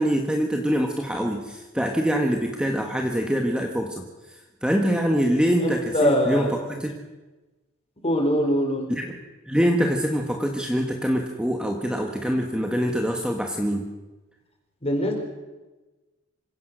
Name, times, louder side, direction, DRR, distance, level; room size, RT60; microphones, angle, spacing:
voice 1, 0.0-7.0 8.9-9.2 9.4-13.9, equal, 5° right, 3 dB, 1.4 m, -24 dB
voice 2, 5.6-6.6 8.0-8.9 14.8-15.1, equal, 30° left, 2 dB, 4.8 m, -23 dB
26.5 x 16.5 x 6.3 m, 1.2 s
head